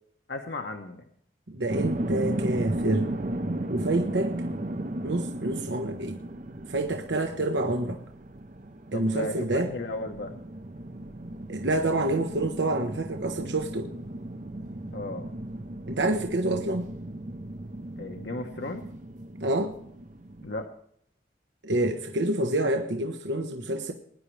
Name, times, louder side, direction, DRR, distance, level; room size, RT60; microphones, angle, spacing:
voice 1, 0.3-1.0 8.9-10.4 14.9-15.3 18.0-18.8 20.4-20.7, left 2 dB, 65° left, 3 dB, 1.2 m, -35 dB
voice 2, 1.5-3.1 3.7-4.3 5.0-6.2 6.7-8.0 8.9-9.7 11.5-13.9 15.9-16.9 19.4-19.7 21.6-23.9, right 2 dB, 75° right, 4 dB, 1.2 m, -27 dB
sound 1, 1.7-20.7, right 1 dB, 40° right, 0.7 m, -36 dB
21.0 x 10.5 x 3.3 m, 0.68 s
head